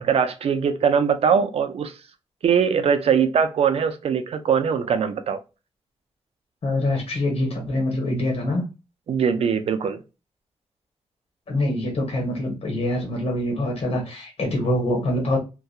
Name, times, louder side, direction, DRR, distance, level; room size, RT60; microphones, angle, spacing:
voice 1, 0.0-2.0 2.4-5.4 9.1-10.0, right 7 dB, 70° right, 0.4 m, -21 dB
voice 2, 6.6-8.6 11.5-15.4, left 1 dB, 65° left, 1.1 m, -24 dB
2.8 x 2.2 x 2.3 m
wide cardioid pair, 155°, 11 cm